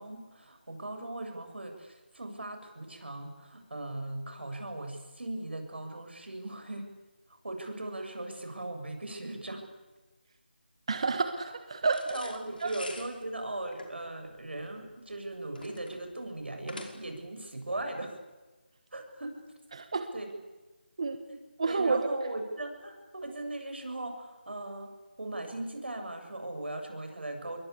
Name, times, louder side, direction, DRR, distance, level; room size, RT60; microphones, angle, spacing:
voice 1, 0.0-6.9 7.3-9.7 12.1-18.2 18.9-19.4 20.1-20.3 21.3-21.4 21.7-24.9 25.2-27.6, right 1 dB, 75° right, 5 dB, 7.7 m, -38 dB
voice 2, 10.9-12.0 12.6-12.7 19.7-20.1 21.0-21.2 21.6-22.1, right 4 dB, 35° right, 8 dB, 1.4 m, -29 dB
sound 1, 11.9-17.3, left 2 dB, 55° left, 5.4 m, -47 dB
28.0 x 23.0 x 8.6 m, 1.2 s
figure-of-eight pair, 175°, 6 cm